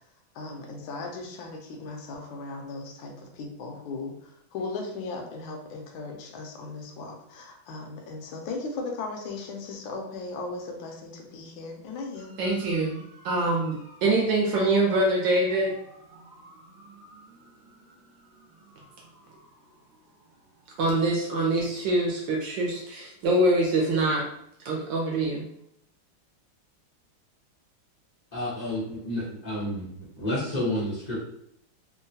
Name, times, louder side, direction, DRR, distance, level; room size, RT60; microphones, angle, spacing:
voice 1, 0.3-12.4, left 3 dB, 75° left, 1 dB, 1.3 m, -37 dB
voice 2, 12.4-15.8 16.3-16.4 17.4-17.5 20.8-24.3 24.6-25.5, right 2 dB, 75° right, -1 dB, 1.2 m, -25 dB
voice 3, 28.3-31.2, left 1 dB, 60° left, -10 dB, 0.4 m, -30 dB
3.6 x 2.2 x 2.7 m, 0.71 s
omnidirectional pair, 2.3 m